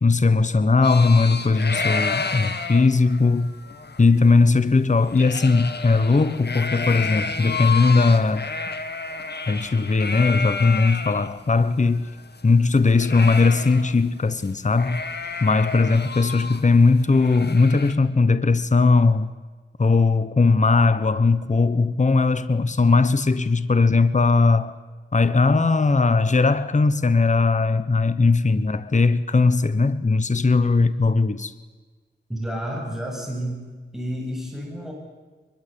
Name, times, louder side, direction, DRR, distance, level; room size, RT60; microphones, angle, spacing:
voice 1, 0.0-3.6 4.0-8.5 9.5-12.1 12.4-15.0 15.4-19.3 19.8-24.7 25.1-31.5, left 3 dB, 35° left, 1.0 m, -19 dB
sound 1, 0.8-11.3 11.6-11.7 12.0-14.1 14.4-14.5 14.8-17.9, left 4 dB, 55° left, 2.0 m, -31 dB
voice 2, 32.3-33.7 33.9-34.9, equal, ahead, 7.9 m, -30 dB
23.0 x 22.5 x 8.3 m
wide cardioid pair, 70°, 20 cm